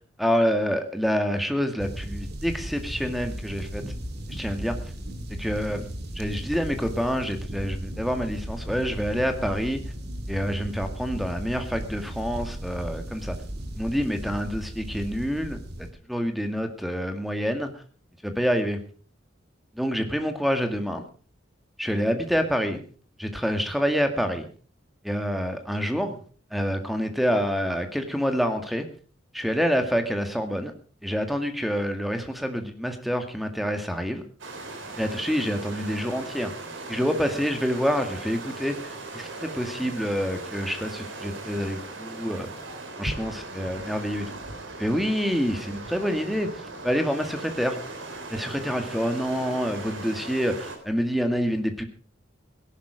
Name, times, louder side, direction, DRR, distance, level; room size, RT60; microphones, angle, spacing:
voice 1, 0.2-3.8 4.3-4.8 5.4-5.8 6.2-9.8 10.3-13.4 13.8-17.8 18.2-18.8 19.8-21.0 21.8-22.8 23.2-24.5 25.0-26.2 26.5-28.9 29.3-30.7 31.0-34.2 35.0-36.5 36.9-42.5 43.0-44.3 44.8-47.8 48.3-51.8, equal, ahead, 6 dB, 1.9 m, -27 dB
sound 1, 1.8-15.9, right 1 dB, 55° right, 2.5 m, -36 dB
sound 2, 34.4-50.8, right 2 dB, 80° right, 3.6 m, -38 dB
17.0 x 11.5 x 5.0 m, 0.40 s
head